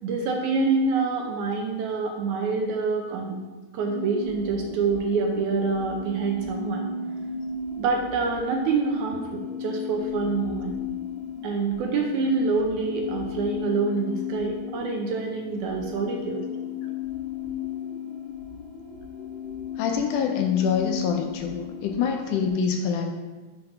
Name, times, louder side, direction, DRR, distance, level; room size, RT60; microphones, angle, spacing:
voice 1, 0.0-3.4 3.7-6.9 7.8-10.8 11.4-16.4, right 4 dB, 75° right, 1 dB, 1.9 m, -26 dB
sound 1, 3.8-22.5, left 6 dB, 55° left, 2.9 m, -35 dB
voice 2, 19.8-23.1, left 6 dB, 80° left, 4 dB, 1.9 m, -25 dB
6.8 x 3.9 x 5.8 m, 1.2 s
omnidirectional pair, 3.9 m